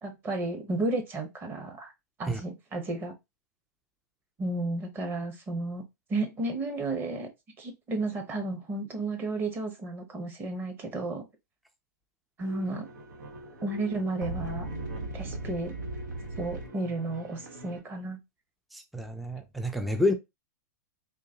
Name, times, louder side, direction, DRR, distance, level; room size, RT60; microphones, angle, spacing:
voice 1, 0.0-1.9 2.2-3.1 4.4-5.8 6.1-7.3 7.6-11.3 12.4-12.9 13.6-14.7 15.1-15.7 16.4-18.2, right 2 dB, 20° right, 1.0 m, -32 dB
sound 1, 12.4-17.8, right 2 dB, 85° right, 1.2 m, -39 dB
voice 2, 18.7-20.1, left 1 dB, ahead, 0.4 m, -29 dB
3.8 x 3.1 x 2.8 m
hypercardioid pair, 140°, 10 cm